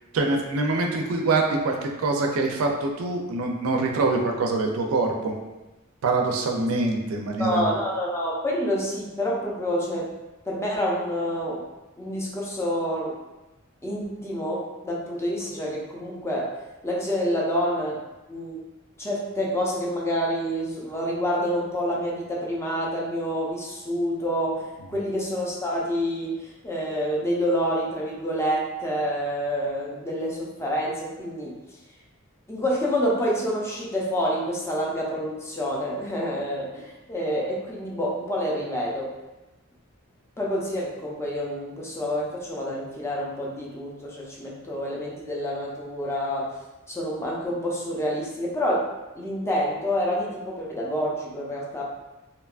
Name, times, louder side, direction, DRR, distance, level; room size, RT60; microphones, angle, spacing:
voice 1, 0.1-5.3 6.0-7.7, right 3 dB, 85° right, 2 dB, 0.4 m, -24 dB
voice 2, 7.4-10.1 10.5-11.6 12.0-13.1 13.8-16.5 16.8-18.0 18.3-18.6 19.0-31.6 32.5-39.1 40.4-46.5 46.9-48.8 49.1-51.8, equal, 15° left, -4 dB, 0.4 m, -28 dB
2.8 x 2.2 x 2.3 m, 1.1 s
head